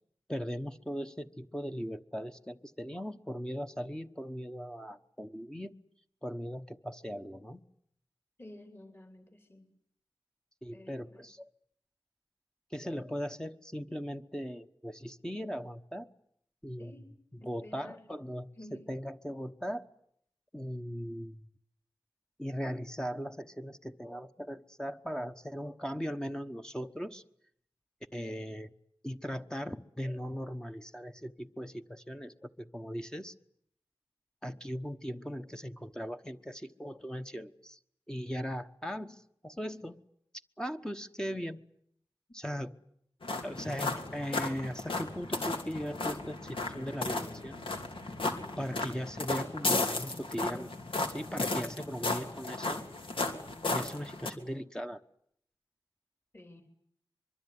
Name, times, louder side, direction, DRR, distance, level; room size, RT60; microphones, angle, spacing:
voice 1, 0.3-5.8 6.2-7.6 10.6-11.5 12.7-16.1 16.6-17.0 17.3-19.9 20.5-21.4 22.4-27.2 28.1-28.7 29.0-33.3 34.4-37.8 38.1-40.0 40.6-41.6 42.3-42.8 43.4-47.6 48.6-50.7 51.1-52.9 53.7-55.0, equal, 10° left, 6 dB, 1.1 m, -39 dB
voice 2, 8.4-9.7 10.7-11.2 16.8-17.1 17.4-18.0 18.6-18.8 56.3-56.6, left 1 dB, 25° left, 6 dB, 3.2 m, -52 dB
sound 1, 43.2-54.3, left 2 dB, 70° left, 2.9 m, -35 dB
24.5 x 23.0 x 9.6 m, 0.70 s
wide cardioid pair, 75°, 9 cm